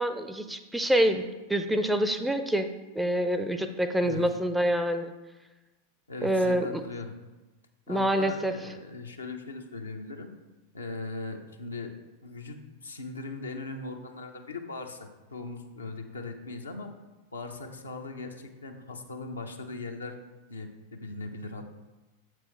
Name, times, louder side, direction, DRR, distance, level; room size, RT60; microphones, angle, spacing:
voice 1, 0.0-2.7 3.0-5.1 6.2-6.8 7.9-8.5, right 1 dB, 5° right, 8 dB, 0.4 m, -26 dB
voice 2, 4.0-4.3 6.1-7.1 7.9-10.3 10.7-11.9 12.2-16.9 17.3-20.2 20.5-21.7, left 3 dB, 75° left, 4 dB, 0.7 m, -39 dB
7.5 x 6.1 x 3.2 m, 1.1 s
figure-of-eight pair, 90°, 0 cm